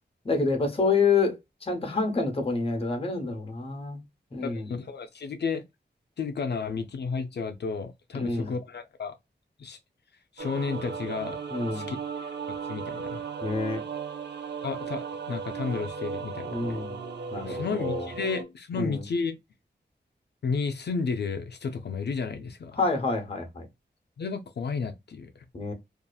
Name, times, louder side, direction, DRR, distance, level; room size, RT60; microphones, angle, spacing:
voice 1, 0.2-1.4 1.6-4.0 4.3-4.7 8.1-8.5 11.5-11.9 13.4-13.8 16.5-17.0 17.3-18.1 18.7-19.0 22.8-23.7 25.5-25.7, left 4 dB, 30° left, 0.8 m, -27 dB
voice 2, 4.4-5.6 6.2-9.2 9.6-9.8 10.4-11.4 11.7-13.2 14.6-16.8 17.4-19.4 20.4-22.8 24.2-25.4, left 5 dB, 65° left, 0.4 m, -32 dB
sound 1, 10.4-18.4, right 5 dB, 70° right, 0.5 m, -36 dB
2.7 x 2.4 x 2.2 m
wide cardioid pair, 105°, 18 cm